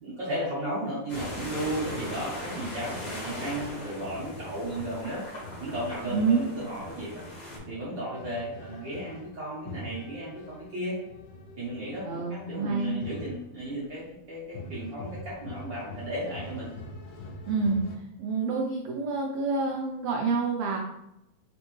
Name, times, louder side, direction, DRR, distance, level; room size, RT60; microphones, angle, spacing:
voice 1, 0.0-5.2 5.6-7.2 7.7-11.0 11.6-16.7, right 1 dB, 65° right, -8 dB, 1.1 m, -34 dB
sound 1, 1.1-14.0 14.5-18.0, left 2 dB, 80° left, 1.5 m, -45 dB
sound 2, 1.1-7.6, left 1 dB, 55° left, 1.2 m, -39 dB
voice 2, 6.1-6.4 12.0-13.0 17.5-20.8, right 4 dB, 85° right, 0 dB, 1.4 m, -28 dB
4.2 x 3.6 x 3.0 m, 0.82 s
omnidirectional pair, 3.5 m